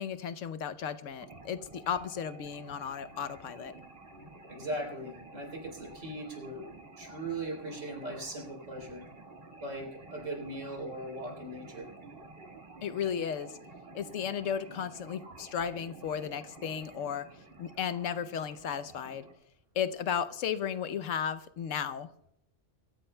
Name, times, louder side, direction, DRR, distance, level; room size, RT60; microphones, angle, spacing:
voice 1, 0.0-3.8 12.8-13.6 13.9-17.3 17.6-19.3 19.7-22.1, left 8 dB, 90° left, 13 dB, 1.1 m, -34 dB
sound 1, 1.2-19.3, right 2 dB, 50° right, 2.1 m, -51 dB
voice 2, 4.5-6.7 7.0-9.1 9.6-11.9, right 1 dB, 85° right, 0 dB, 4.2 m, -39 dB
23.5 x 15.0 x 2.2 m, 0.78 s
omnidirectional pair, 1.3 m